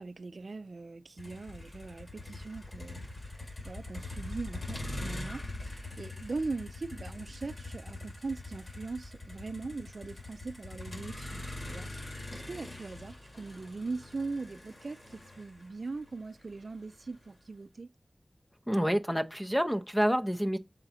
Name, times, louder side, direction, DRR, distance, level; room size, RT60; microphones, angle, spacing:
voice 1, 0.0-3.1 3.6-17.9, right 3 dB, 65° right, 0.4 m, -40 dB
Motor vehicle (road), 1.2-17.3, left 2 dB, 50° left, 2.1 m, -43 dB
voice 2, 18.7-20.6, equal, 5° left, 0.6 m, -28 dB
6.9 x 3.8 x 4.2 m
wide cardioid pair, 80°, 0 cm